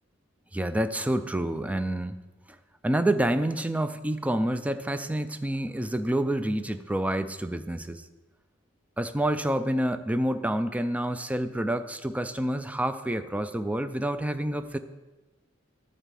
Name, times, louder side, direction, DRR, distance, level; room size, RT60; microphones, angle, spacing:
voice 1, 0.5-2.2 2.8-8.0 9.0-14.8, right 1 dB, 5° right, 10 dB, 0.4 m, -28 dB
11.5 x 4.1 x 7.5 m, 1.1 s
head